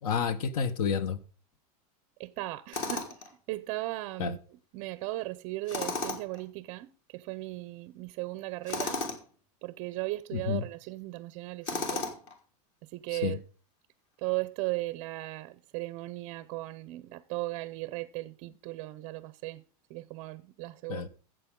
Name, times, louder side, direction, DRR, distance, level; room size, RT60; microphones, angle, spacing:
voice 1, 0.0-1.2 4.2-4.4 10.3-10.6 13.1-13.4 20.9-21.1, left 6 dB, 80° left, 1.2 m, -30 dB
voice 2, 2.2-4.4 4.7-9.0 9.6-12.0 12.8-13.4 14.2-19.6 19.9-21.1, right 19 dB, 35° right, 0.5 m, -37 dB
Tools, 2.7-3.3 5.7-6.4 8.7-9.2 11.6-12.3, left 3 dB, 40° left, 2.0 m, -34 dB
13.5 x 7.8 x 3.7 m
supercardioid pair, 170°, 19 cm